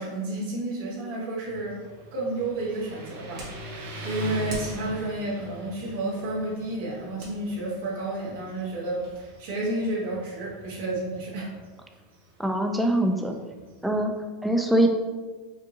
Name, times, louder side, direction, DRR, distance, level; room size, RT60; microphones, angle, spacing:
voice 1, 0.0-1.8 2.1-3.7 4.0-11.5, right 2 dB, 75° right, -5 dB, 1.4 m, -31 dB
Motorcycle, 1.4-14.1, equal, 90° right, 0.7 m, -43 dB
sound 1, 2.5-9.2, right 3 dB, 55° right, 1.4 m, -47 dB
voice 2, 12.4-13.3 13.8-14.1 14.4-14.9, right 1 dB, 5° right, 3 dB, 0.5 m, -23 dB
5.0 x 2.6 x 2.8 m, 1.3 s
supercardioid pair, 120°, 0 cm